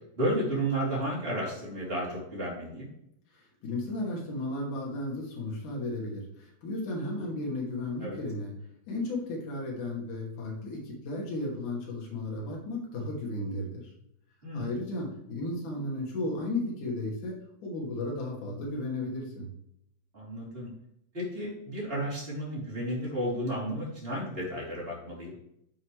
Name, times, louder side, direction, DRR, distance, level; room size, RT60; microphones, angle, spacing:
voice 1, 0.2-2.9 8.0-8.2 14.4-14.7 20.1-20.7 21.1-25.3, right 1 dB, 15° right, -5 dB, 3.5 m, -32 dB
voice 2, 3.3-8.5 8.9-13.9 14.5-17.3 17.6-19.5, left 2 dB, 60° left, -2 dB, 3.7 m, -34 dB
10.0 x 7.1 x 3.3 m, 0.77 s
omnidirectional pair, 4.3 m